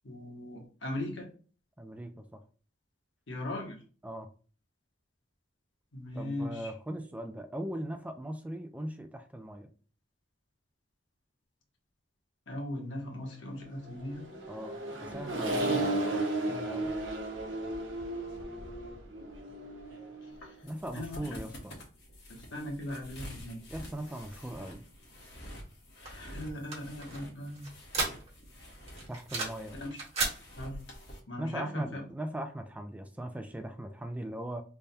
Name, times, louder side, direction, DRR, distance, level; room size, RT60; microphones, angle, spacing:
voice 1, 0.0-1.3 3.3-3.8 5.9-6.7 12.5-14.3 15.6-15.9 20.2-20.6 20.9-21.4 22.3-23.6 26.0-27.7 29.8-30.0 30.6-30.8 31.3-32.0, left 1 dB, 85° left, 1 dB, 1.1 m, -39 dB
voice 2, 1.8-2.4 4.0-4.3 6.1-9.7 14.5-16.9 20.6-21.8 23.7-24.8 29.1-29.8 31.4-34.6, right 1 dB, 10° right, 6 dB, 0.3 m, -39 dB
Accelerating revving vroom, 13.9-20.5, right 2 dB, 80° right, 0.9 m, -34 dB
sound 1, 20.3-31.2, equal, 65° left, 1.3 m, -48 dB
sound 2, 26.0-28.5 28.9-29.7 29.9-30.4, right 3 dB, 35° right, 1.3 m, -34 dB
3.4 x 2.2 x 4.0 m, 0.39 s
head